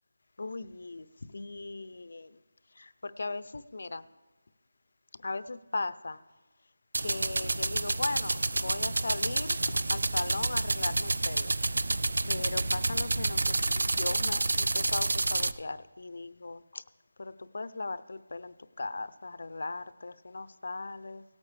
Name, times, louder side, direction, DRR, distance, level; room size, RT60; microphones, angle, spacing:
voice 1, 0.4-2.4 2.8-4.1 5.2-6.2 7.0-11.5 12.2-16.8 17.2-21.2, left 3 dB, 55° left, 14 dB, 0.6 m, -38 dB
sound 1, 6.9-15.5, right 2 dB, 65° right, 0.5 m, -29 dB
18.0 x 8.3 x 3.3 m, 1.3 s
figure-of-eight pair, 175°, 0 cm